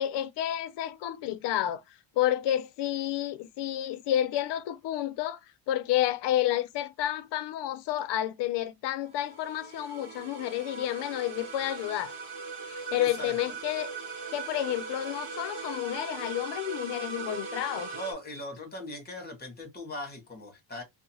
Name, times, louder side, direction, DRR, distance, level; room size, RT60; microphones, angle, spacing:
voice 1, 0.0-1.8 2.2-5.4 5.7-12.1 12.6-13.9 14.3-17.9, left 12 dB, 60° left, 0.6 m, -30 dB
sound 1, 9.0-18.1, right 4 dB, 60° right, 1.3 m, -40 dB
voice 2, 12.9-13.4 17.9-20.8, left 1 dB, 20° left, 1.1 m, -40 dB
2.8 x 2.1 x 2.6 m
cardioid pair, 145°, 48 cm